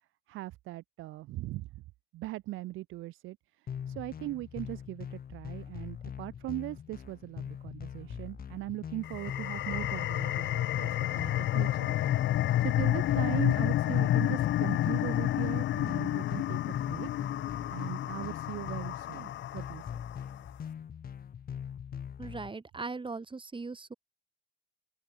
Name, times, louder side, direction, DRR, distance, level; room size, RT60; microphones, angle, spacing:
voice 1, 0.3-1.8 2.1-17.2 17.7-19.9, right 17 dB, 90° right, 0.9 m, -40 dB
sound 1, 3.7-22.5, left 8 dB, 50° left, 1.3 m, -42 dB
sound 2, 9.0-20.2, left 14 dB, 70° left, 0.6 m, -30 dB
voice 2, 22.2-23.9, right 4 dB, 25° right, 3.2 m, -39 dB
open air
cardioid pair, 90°, 20 cm